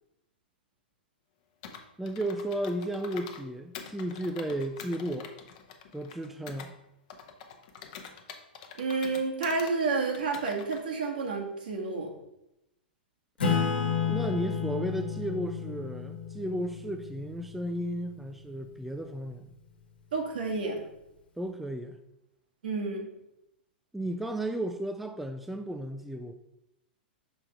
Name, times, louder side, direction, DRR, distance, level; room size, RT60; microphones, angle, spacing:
Computer keyboard, 1.6-3.4 3.7-6.7 7.1-9.7 10.1-10.8, left 7 dB, 45° left, 0.8 m, -46 dB
voice 1, 2.0-5.3 5.9-6.7 14.1-19.5 21.4-22.0 23.9-26.3, right 1 dB, 5° right, 6 dB, 0.3 m, -34 dB
voice 2, 8.8-12.1 20.1-20.8 22.6-23.1, right 4 dB, 60° right, 1 dB, 1.4 m, -30 dB
Acoustic guitar / Strum, 13.4-18.4, left 6 dB, 70° left, 1.3 m, -32 dB
6.1 x 3.7 x 4.5 m, 0.86 s
figure-of-eight pair, 100°, 5 cm